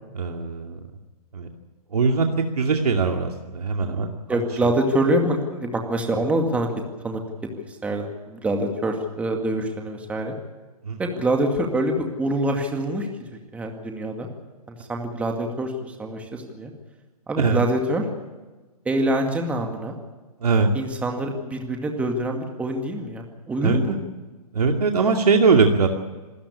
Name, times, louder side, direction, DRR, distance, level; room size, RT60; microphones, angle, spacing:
voice 1, 0.1-0.8 1.3-1.5 1.9-2.3 2.6-4.4 10.8-11.0 17.4-17.6 20.4-20.7 23.6-24.0 24.5-25.9, right 4 dB, 75° right, 3 dB, 2.4 m, -21 dB
voice 2, 4.3-6.7 7.0-7.2 7.7-10.3 11.0-13.1 13.5-14.3 14.7-16.7 17.3-18.0 18.9-20.0 20.7-24.0, right 1 dB, 5° right, 2 dB, 2.2 m, -25 dB
27.0 x 13.5 x 8.5 m, 1.2 s
hypercardioid pair, 145°, 20 cm